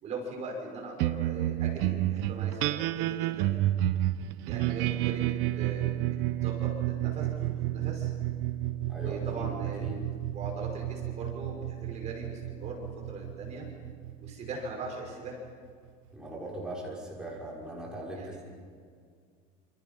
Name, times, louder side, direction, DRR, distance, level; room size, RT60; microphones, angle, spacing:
voice 1, 0.0-3.6 4.5-8.1 9.0-9.9 10.3-13.7 14.2-15.4 18.1-18.4, right 3 dB, 35° right, 0 dB, 5.8 m, -40 dB
sound 1, 1.0-15.7, right 14 dB, 70° right, 0.9 m, -31 dB
voice 2, 8.9-10.0 16.1-18.4, right 1 dB, 5° right, -6 dB, 6.2 m, -40 dB
28.5 x 28.5 x 5.6 m, 2.1 s
cardioid pair, 165°, 20 cm